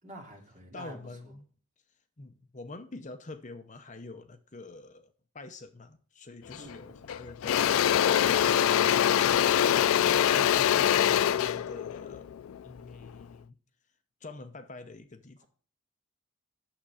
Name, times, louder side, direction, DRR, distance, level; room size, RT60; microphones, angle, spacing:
voice 1, 0.0-1.0 1.2-1.3 6.5-7.0 15.4-15.5, right 1 dB, 35° right, 2.5 m, -48 dB
voice 2, 0.7-1.5 2.2-9.1 9.4-12.3 12.6-13.6 14.2-15.5, left 2 dB, 35° left, 0.7 m, -46 dB
Engine / Drill, 6.5-6.7 7.1-13.2, left 10 dB, 75° left, 0.3 m, -24 dB
8.8 x 7.2 x 4.9 m
head